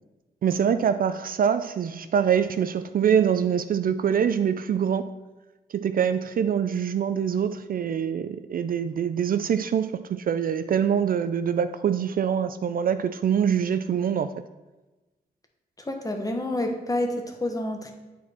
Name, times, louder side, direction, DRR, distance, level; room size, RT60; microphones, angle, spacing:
voice 1, 0.4-5.1 5.7-14.3, right 8 dB, 55° right, 11 dB, 0.4 m, -24 dB
voice 2, 15.8-17.9, left 1 dB, 20° left, 3 dB, 1.1 m, -28 dB
8.2 x 4.3 x 4.4 m, 1.1 s
cardioid pair, 80°, 17 cm